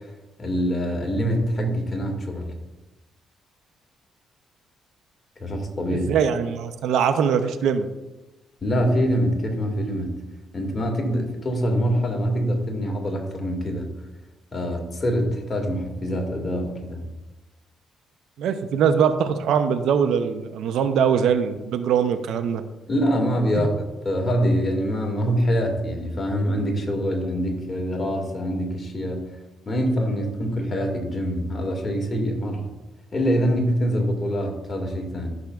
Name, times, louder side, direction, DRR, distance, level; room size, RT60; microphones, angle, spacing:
voice 1, 0.4-2.5 5.4-6.1 8.6-10.1 10.5-13.9 14.5-17.0 22.9-29.3 29.7-32.7 33.1-35.3, equal, 30° left, 1 dB, 2.0 m, -24 dB
voice 2, 5.9-7.9 18.4-22.6 23.6-23.7, right 7 dB, 80° right, 9 dB, 0.6 m, -22 dB
13.0 x 6.3 x 2.4 m, 1.1 s
cardioid pair, 90°, 0 cm